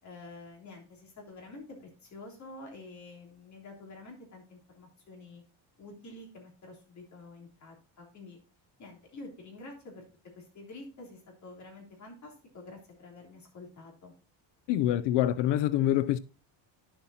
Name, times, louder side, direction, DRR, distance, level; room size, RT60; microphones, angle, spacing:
voice 1, 0.0-5.4 5.8-8.4 8.8-10.0 10.4-14.1, left 2 dB, 35° left, 3.5 m, -48 dB
voice 2, 14.7-16.2, left 12 dB, 65° left, 0.5 m, -25 dB
11.5 x 7.3 x 2.8 m
cardioid pair, 130°, 47 cm